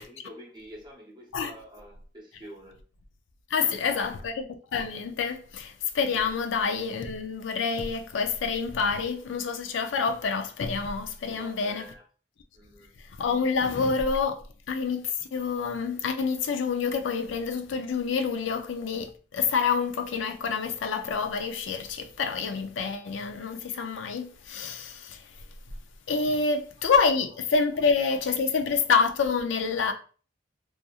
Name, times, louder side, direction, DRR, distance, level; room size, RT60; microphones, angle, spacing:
voice 1, 0.0-2.8 3.6-4.3 11.3-12.0 12.5-13.0 26.4-26.5, equal, 25° right, 0.8 m, -47 dB
voice 2, 3.5-4.4 4.7-11.9 13.2-25.2 26.1-29.9, left 5 dB, 75° left, 0.4 m, -27 dB
2.8 x 2.4 x 2.3 m
head